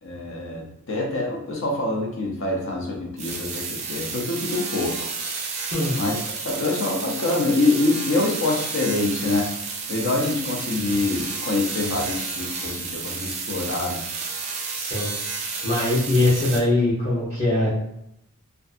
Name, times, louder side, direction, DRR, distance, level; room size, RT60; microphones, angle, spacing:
voice 1, 0.0-5.1 6.0-9.5 9.9-14.0, left 2 dB, 65° left, -1 dB, 0.6 m, -25 dB
sound 1, 3.2-16.6, right 4 dB, 30° right, 0.4 m, -31 dB
voice 2, 14.7-15.1 15.6-17.7, left 2 dB, 30° left, -10 dB, 0.8 m, -22 dB
2.6 x 2.2 x 2.5 m, 0.78 s
head